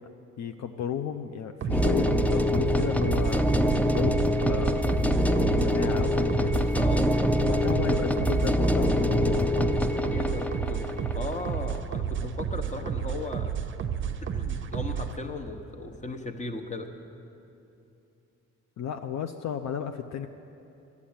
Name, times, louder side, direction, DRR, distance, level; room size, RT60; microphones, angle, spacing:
voice 1, 0.4-4.9 5.6-6.8 7.4-9.5 18.8-20.3, left 8 dB, 65° left, 7 dB, 0.6 m, -34 dB
sound 1, 1.6-15.2, right 8 dB, 40° right, 0.7 m, -32 dB
sound 2, 1.7-11.8, left 1 dB, 5° left, 0.4 m, -25 dB
voice 2, 10.1-10.9 11.1-13.5 14.3-16.9, left 3 dB, 25° left, 6 dB, 1.1 m, -36 dB
11.5 x 8.3 x 8.8 m, 2.8 s
cardioid pair, 90°, 30 cm